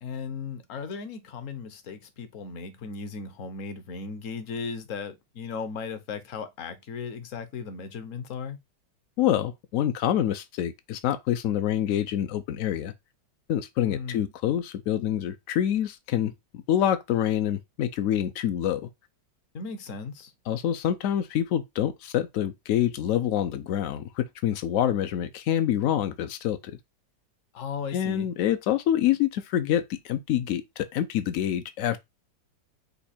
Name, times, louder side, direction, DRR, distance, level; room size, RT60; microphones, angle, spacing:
voice 1, 0.0-8.6 13.8-14.3 19.5-20.3 27.5-28.3, left 5 dB, 60° left, 0.9 m, -36 dB
voice 2, 9.2-12.9 13.5-18.8 20.5-26.6 27.9-32.0, left 11 dB, 80° left, 0.7 m, -26 dB
5.5 x 2.2 x 4.2 m
omnidirectional pair, 1.9 m